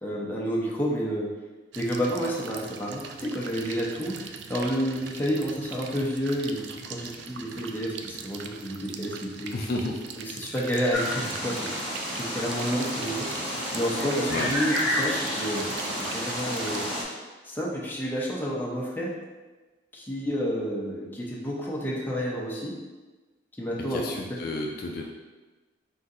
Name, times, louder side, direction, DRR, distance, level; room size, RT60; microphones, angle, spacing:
voice 1, 0.0-1.3 1.8-9.5 10.3-11.6 12.1-13.3 13.7-15.9 16.1-16.9 17.4-19.1 19.9-22.7 23.6-24.0, equal, 10° left, -4 dB, 0.6 m, -30 dB
sound 1, 1.7-16.9, right 6 dB, 70° right, 0.3 m, -42 dB
voice 2, 9.5-10.0 14.3-14.5 23.9-25.0, left 2 dB, 50° left, 0 dB, 0.4 m, -31 dB
sound 2, 10.9-17.0, equal, 5° right, 1.1 m, -30 dB
3.8 x 2.7 x 3.9 m, 1.2 s
head